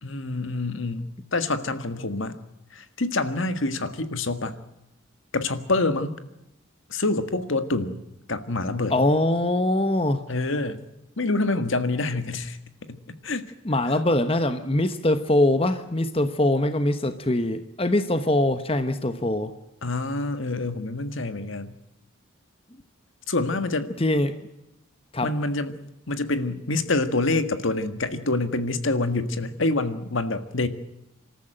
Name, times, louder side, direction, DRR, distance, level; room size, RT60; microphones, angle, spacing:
voice 1, 0.0-2.4 2.7-4.6 5.3-6.2 6.9-8.0 8.3-9.0 10.3-10.8 11.2-12.6 12.9-13.5 19.8-21.8 23.3-23.9 25.2-25.7 26.1-30.7, left 2 dB, 70° left, 10 dB, 1.7 m, -26 dB
voice 2, 8.9-10.3 13.6-19.5 24.0-24.4 25.1-25.3, left 1 dB, 25° left, 9 dB, 1.1 m, -23 dB
26.5 x 14.0 x 8.9 m, 0.88 s
head